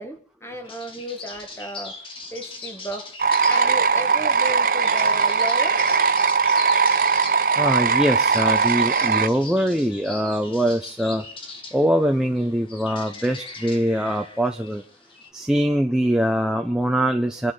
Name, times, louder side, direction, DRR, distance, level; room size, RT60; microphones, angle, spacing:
voice 1, 0.0-5.8, right 1 dB, 15° left, 1.8 m, -34 dB
sound 1, 0.6-15.3, left 3 dB, 30° left, 2.2 m, -40 dB
sound 2, 3.2-9.3, right 5 dB, 50° right, 0.7 m, -20 dB
voice 2, 7.6-11.2 11.7-14.8 15.3-17.5, equal, 5° right, 1.0 m, -22 dB
28.0 x 11.5 x 4.1 m
head